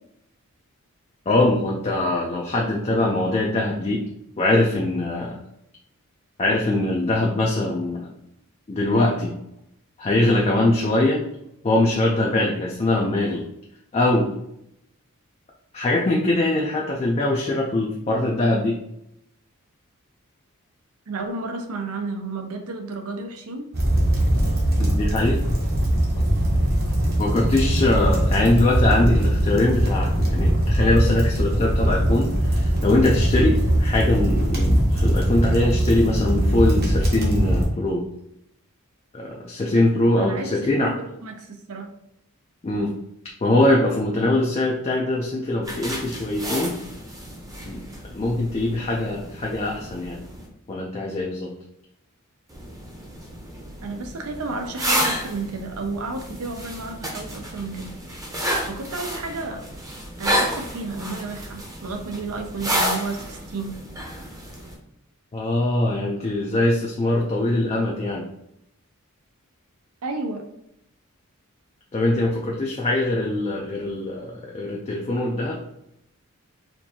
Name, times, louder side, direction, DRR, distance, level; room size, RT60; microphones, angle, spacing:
voice 1, 1.3-4.0 4.4-5.4 6.4-8.1 8.7-9.3 10.0-11.2 11.6-13.4 13.9-14.4 15.7-18.8 24.8-25.4 27.2-38.0 39.1-40.9 42.6-42.9 43.4-46.8 47.6-47.8 48.1-50.2 50.7-51.5 65.3-68.2 71.9-75.6, left 2 dB, 25° left, -1 dB, 0.4 m, -22 dB
voice 2, 21.1-23.7 40.2-41.9 53.8-57.9 58.7-59.6 60.2-63.8 70.0-70.4, right 3 dB, 75° right, 5 dB, 0.6 m, -32 dB
sound 1, 23.7-37.7, right 1 dB, 45° right, 0.9 m, -21 dB
sound 2, 45.6-50.5 52.5-64.7, equal, 15° right, 0.7 m, -31 dB
4.4 x 2.6 x 2.7 m, 0.80 s
head